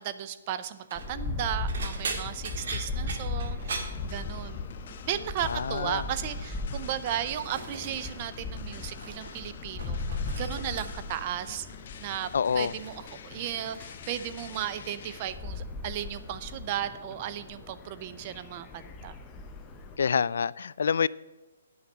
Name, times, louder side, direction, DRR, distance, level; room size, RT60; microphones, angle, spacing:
voice 1, 0.0-4.7 5.1-10.0 10.3-11.7 12.0-12.3 12.5-12.9 13.2-19.2, right 11 dB, 35° right, 13 dB, 0.6 m, -35 dB
sound 1, 0.7-1.1 1.7-4.7 5.0-5.3 5.7-6.2 6.9-8.3 8.6-9.4 9.7-11.2 12.1-12.4 12.8-14.8 15.1-15.6 16.0-16.2 17.5-17.6, right 4 dB, 65° right, 1.8 m, -41 dB
sound 2, 0.9-20.0, left 3 dB, 15° left, 0.8 m, -38 dB
sound 3, 3.6-15.3, left 8 dB, 50° left, 0.7 m, -48 dB
voice 2, 5.4-6.0 12.3-12.7 20.0-21.1, left 6 dB, 70° left, 20 dB, 0.3 m, -27 dB
9.7 x 5.8 x 7.8 m, 1.1 s
hypercardioid pair, 160°, 0 cm